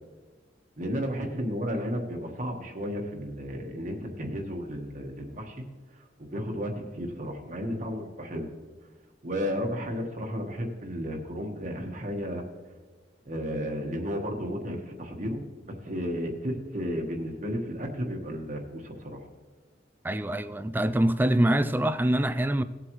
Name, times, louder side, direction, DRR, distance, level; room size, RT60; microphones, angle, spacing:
voice 1, 0.8-5.7 5.9-8.5 9.2-12.4 13.2-19.3, equal, 40° right, 1.2 m, -33 dB
voice 2, 20.0-22.6, right 1 dB, 10° right, 0.4 m, -24 dB
18.5 x 7.9 x 3.1 m
head